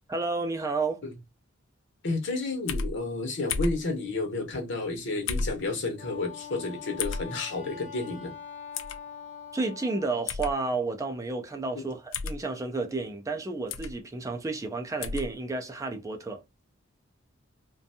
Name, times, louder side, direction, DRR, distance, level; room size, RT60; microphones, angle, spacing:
voice 1, 0.1-1.0 9.5-16.4, right 3 dB, 15° right, 0.4 m, -31 dB
voice 2, 2.0-8.3, left 3 dB, 65° left, 0.9 m, -31 dB
sound 1, 2.7-2.9 3.5-3.8 5.3-5.6 7.0-7.2 8.7-9.0 10.3-10.5 12.1-12.4 13.7-13.9 15.0-15.3, left 4 dB, 85° left, 0.4 m, -31 dB
Wind instrument woodwind instrument, 6.0-10.2, left 7 dB, 40° left, 0.6 m, -43 dB
2.5 x 2.2 x 2.6 m
head